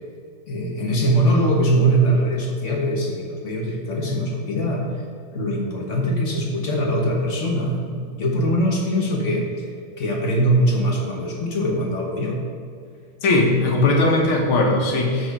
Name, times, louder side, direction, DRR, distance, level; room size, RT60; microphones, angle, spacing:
voice 1, 0.5-4.9 5.3-9.5 10.0-12.4, right 1 dB, 45° left, 0 dB, 1.2 m, -22 dB
voice 2, 13.2-15.3, left 2 dB, 85° left, 0 dB, 2.1 m, -19 dB
6.4 x 6.0 x 6.6 m, 2.2 s
omnidirectional pair, 2.2 m